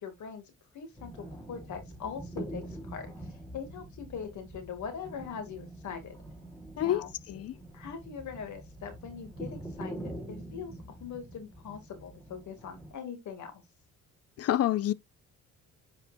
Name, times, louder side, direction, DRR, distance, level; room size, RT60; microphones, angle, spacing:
voice 1, 0.0-6.2 6.8-7.1 7.7-13.5, left 6 dB, 70° left, 2.5 m, -42 dB
sound 1, 1.0-12.9, right 1 dB, 10° left, 3.5 m, -44 dB
voice 2, 14.4-14.9, left 12 dB, 55° left, 0.5 m, -26 dB
10.5 x 5.0 x 2.6 m
cardioid pair, 90°, 30 cm